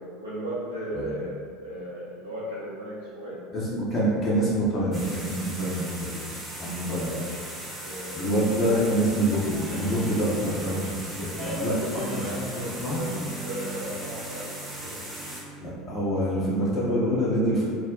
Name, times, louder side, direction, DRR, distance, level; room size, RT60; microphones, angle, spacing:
voice 1, 0.0-3.4 6.9-7.2 7.8-8.2 11.4-13.1 13.4-15.0, equal, 85° right, -10 dB, 0.5 m, -35 dB
voice 2, 3.5-6.2 6.6-7.1 8.1-11.8 12.1-13.0 15.6-17.7, equal, 40° left, -7 dB, 0.6 m, -26 dB
sound 1, 4.9-15.4, right 1 dB, 20° right, 0.9 m, -38 dB
Guitar, 9.4-16.6, equal, ahead, 0.6 m, -39 dB
2.3 x 2.1 x 3.6 m, 2.1 s
figure-of-eight pair, 70°, 0 cm